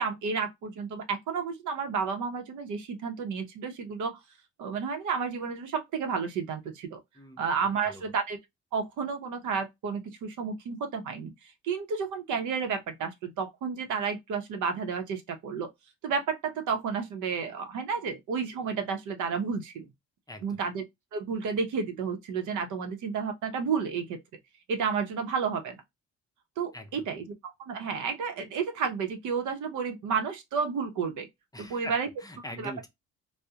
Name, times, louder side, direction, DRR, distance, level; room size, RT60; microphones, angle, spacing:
voice 1, 0.0-4.2 4.6-7.0 7.4-8.4 8.7-11.3 11.6-15.7 16.0-19.9 20.4-20.8 21.1-24.2 24.7-25.8 26.6-27.2 27.7-31.3 31.6-32.1 32.6-32.7, right 5 dB, 75° right, 0.7 m, -31 dB
voice 2, 20.3-20.6 26.7-27.1 31.5-32.9, left 1 dB, 15° left, 0.5 m, -42 dB
2.2 x 2.0 x 2.7 m
cardioid pair, 90°, 30 cm